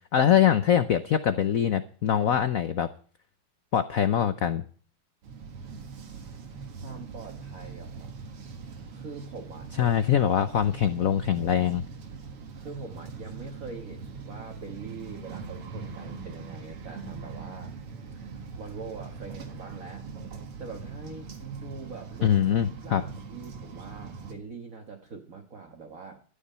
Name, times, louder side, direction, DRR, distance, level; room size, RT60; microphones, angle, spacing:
voice 1, 0.1-2.9 3.7-4.6 9.8-11.8 22.2-23.0, left 9 dB, 90° left, 12 dB, 0.7 m, -23 dB
sound 1, 5.2-24.4, right 5 dB, 85° right, 2.7 m, -42 dB
voice 2, 6.7-8.2 8.9-10.0 12.5-17.8 18.5-20.1 20.6-26.2, right 4 dB, 40° right, 3 dB, 1.7 m, -43 dB
13.0 x 10.0 x 5.5 m, 0.42 s
omnidirectional pair, 2.4 m